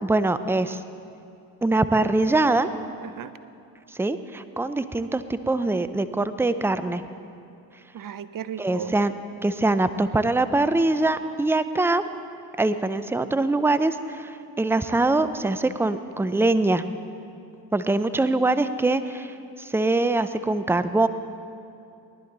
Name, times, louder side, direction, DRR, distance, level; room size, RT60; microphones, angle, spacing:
voice 1, 0.0-0.8 1.6-2.7 4.0-7.0 8.6-9.1 9.4-12.0 12.6-16.8 17.7-21.1, right 2 dB, 5° right, 12 dB, 0.6 m, -23 dB
voice 2, 7.9-8.9, right 9 dB, 45° right, 14 dB, 0.7 m, -35 dB
19.0 x 11.0 x 4.0 m, 2.6 s
hypercardioid pair, 45°, 45 cm